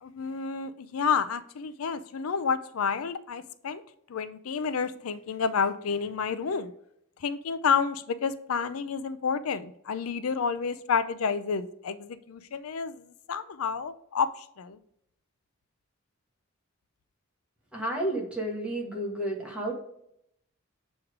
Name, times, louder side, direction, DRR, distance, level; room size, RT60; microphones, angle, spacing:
voice 1, 0.0-3.8 4.1-6.7 7.2-14.8, left 6 dB, 85° left, 12 dB, 0.5 m, -30 dB
voice 2, 17.7-19.7, right 1 dB, 5° right, -2 dB, 1.4 m, -31 dB
7.2 x 3.2 x 4.9 m, 0.73 s
head